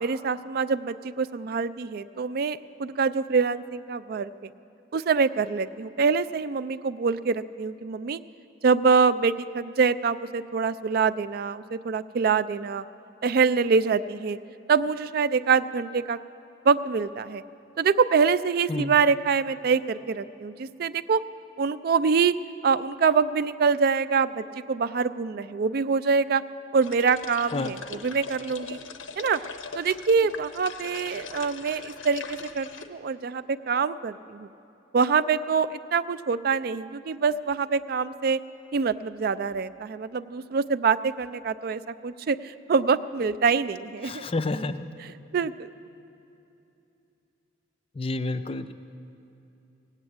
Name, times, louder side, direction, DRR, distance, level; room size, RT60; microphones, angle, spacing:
voice 1, 0.0-4.5 4.9-8.2 8.6-12.8 13.2-14.4 14.7-16.2 16.6-17.4 17.8-21.2 21.6-22.3 22.6-26.4 26.7-27.8 28.0-28.8 29.2-29.4 29.7-34.5 34.9-38.4 38.7-44.3 45.3-45.7, right 5 dB, 50° right, 15 dB, 0.3 m, -25 dB
sound 1, 26.8-32.9, left 5 dB, 85° left, 0.8 m, -40 dB
voice 2, 44.0-44.9 47.9-48.7, left 2 dB, 30° left, 10 dB, 0.4 m, -29 dB
17.5 x 8.2 x 8.7 m, 2.8 s
head